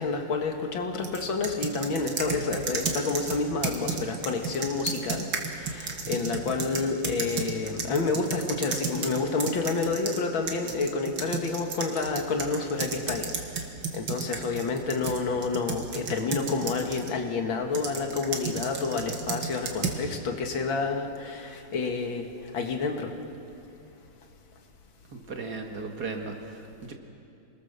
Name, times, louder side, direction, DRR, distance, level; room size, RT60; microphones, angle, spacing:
voice 1, 0.0-13.5 13.9-22.3 22.5-23.1, left 4 dB, 90° left, 4 dB, 2.5 m, -29 dB
sound 1, 1.0-10.2 10.5-17.2 17.8-20.0, right 5 dB, 80° right, 2.5 m, -33 dB
voice 2, 25.1-26.9, right 4 dB, 55° right, 3 dB, 2.3 m, -36 dB
28.0 x 20.0 x 6.8 m, 2.7 s
omnidirectional pair, 2.1 m